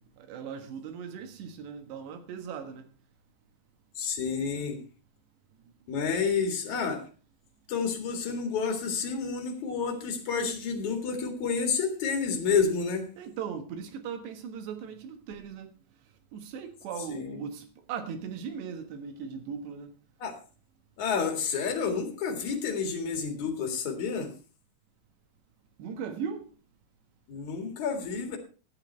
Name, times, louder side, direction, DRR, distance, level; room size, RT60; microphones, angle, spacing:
voice 1, 0.2-2.8 13.2-15.7 16.3-19.9 25.8-26.5, right 7 dB, 80° right, 3.6 m, -38 dB
voice 2, 4.0-4.8 5.9-7.0 7.7-13.1 17.1-17.4 20.2-20.3 21.0-24.3 27.3-28.4, left 5 dB, 50° left, 2.9 m, -29 dB
11.5 x 9.1 x 4.5 m
omnidirectional pair, 4.9 m